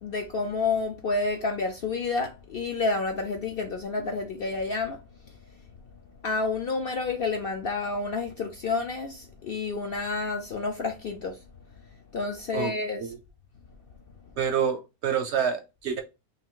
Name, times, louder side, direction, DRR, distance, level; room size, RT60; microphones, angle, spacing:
voice 1, 0.0-5.0 6.2-11.4 12.1-13.0, left 3 dB, 60° left, 0.6 m, -29 dB
voice 2, 14.4-16.0, right 7 dB, 65° right, 0.8 m, -27 dB
3.6 x 2.6 x 3.7 m
omnidirectional pair, 1.5 m